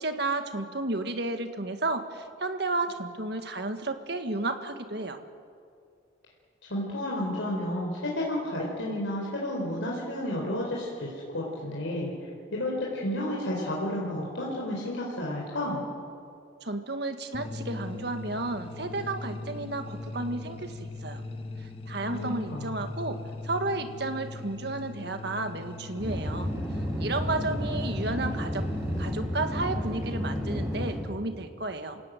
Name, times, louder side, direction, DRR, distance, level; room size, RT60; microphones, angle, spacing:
voice 1, 0.0-5.2 16.6-21.2 21.6-26.5 27.0-28.7 29.0-32.0, right 2 dB, 55° right, 7 dB, 1.7 m, -32 dB
voice 2, 6.7-15.8 22.1-22.9, left 1 dB, 75° left, -3 dB, 4.2 m, -32 dB
sound 1, 17.3-29.1, left 3 dB, 30° left, 1.5 m, -40 dB
sound 2, 26.0-31.0, equal, 20° right, 7.0 m, -31 dB
28.0 x 17.0 x 9.3 m, 2.4 s
head